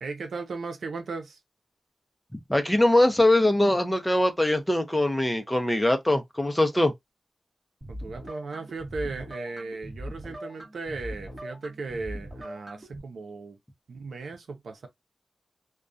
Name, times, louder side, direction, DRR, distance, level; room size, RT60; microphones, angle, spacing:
voice 1, 0.0-1.4 7.9-13.6 13.9-14.9, right 3 dB, 85° right, 0.6 m, -36 dB
voice 2, 2.5-6.9, left 1 dB, 10° left, 0.6 m, -22 dB
sound 1, 7.8-13.0, equal, 20° right, 1.0 m, -40 dB
2.3 x 2.2 x 2.4 m
wide cardioid pair, 80°, 0 cm